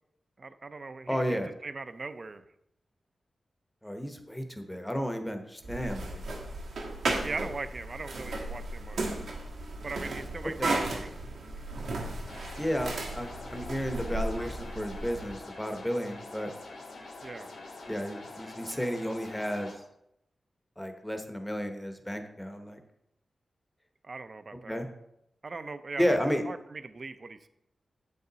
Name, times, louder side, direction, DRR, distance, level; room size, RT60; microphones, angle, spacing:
voice 1, 0.4-2.4 7.2-9.0 9.8-11.1 17.2-17.5 24.0-24.8 25.4-27.5, right 3 dB, 35° right, 11 dB, 0.4 m, -40 dB
voice 2, 1.1-1.5 3.8-6.2 10.4-10.8 12.6-16.5 17.9-19.7 20.8-22.8 24.7-24.9 26.0-26.4, equal, 5° left, 5 dB, 0.8 m, -32 dB
sound 1, 5.6-15.3, right 2 dB, 85° right, 1.3 m, -35 dB
sound 2, 12.3-19.7, left 3 dB, 80° left, 1.6 m, -45 dB
8.3 x 5.5 x 3.9 m, 0.81 s
wide cardioid pair, 155°, 0 cm